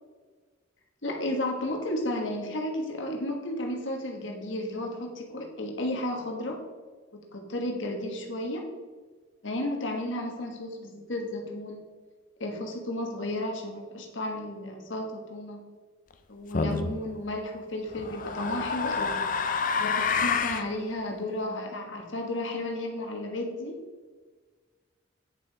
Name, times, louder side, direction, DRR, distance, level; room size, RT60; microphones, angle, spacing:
voice 1, 1.0-6.6 7.1-8.7 9.4-11.9 12.4-15.7 16.3-19.3 19.8-23.8, left 1 dB, 70° left, 2 dB, 1.4 m, -33 dB
sound 1, 16.5-16.9 17.9-20.7, left 5 dB, 40° left, 0.5 m, -28 dB
8.9 x 5.6 x 4.6 m, 1.4 s
head